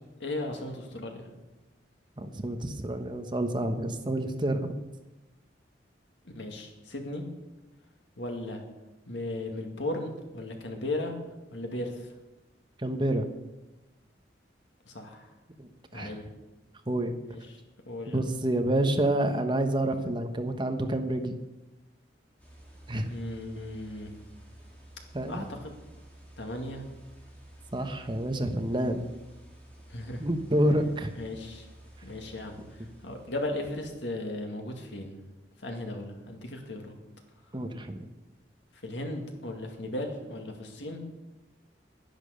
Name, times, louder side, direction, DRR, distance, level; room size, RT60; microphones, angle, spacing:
voice 1, 0.2-1.3 6.2-7.3 8.2-8.6 9.1-11.2 11.5-12.1 14.9-15.3 15.9-16.3 17.3-17.6 17.9-18.2 23.1-24.1 25.3-25.7 26.4-26.9 29.9-30.2 31.2-31.7 32.0-35.2 35.6-37.0 38.8-41.0, left 1 dB, 85° left, 3 dB, 2.2 m, -36 dB
voice 2, 2.2-4.7 12.8-13.3 15.6-16.1 16.9-17.1 18.1-21.4 22.9-23.1 25.1-25.4 27.7-29.1 30.2-31.1 37.5-38.1, right 1 dB, 25° right, 6 dB, 1.0 m, -28 dB
sound 1, 22.4-34.0, right 1 dB, 10° left, 2.6 m, -52 dB
11.0 x 10.5 x 6.6 m, 1.0 s
head